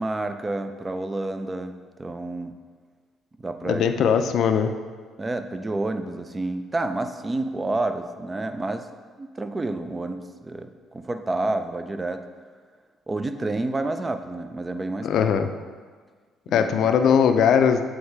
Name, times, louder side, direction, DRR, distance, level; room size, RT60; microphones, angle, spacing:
voice 1, 0.0-2.6 3.4-3.8 5.2-8.9 9.2-12.2 13.1-15.3 16.5-16.7, right 2 dB, 20° right, 8 dB, 0.4 m, -29 dB
voice 2, 3.6-4.7 15.0-15.5 16.5-17.8, left 7 dB, 70° left, 7 dB, 0.4 m, -20 dB
8.0 x 3.2 x 4.6 m, 1.5 s
cardioid pair, 105°, 0 cm